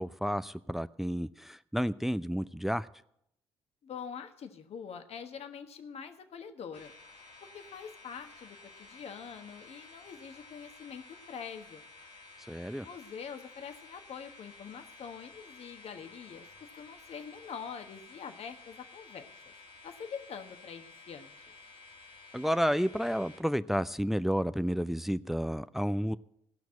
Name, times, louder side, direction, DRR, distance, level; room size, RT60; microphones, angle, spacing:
voice 1, 0.0-2.9 12.5-12.9 22.3-26.2, equal, ahead, 0.5 m, -31 dB
voice 2, 3.8-6.9 7.4-11.0 11.3-11.8 12.8-19.3 19.8-21.3, left 7 dB, 55° left, 1.3 m, -44 dB
sound 1, 6.7-23.4, left 3 dB, 75° left, 2.6 m, -53 dB
17.0 x 6.0 x 8.4 m
hypercardioid pair, 45°, 12 cm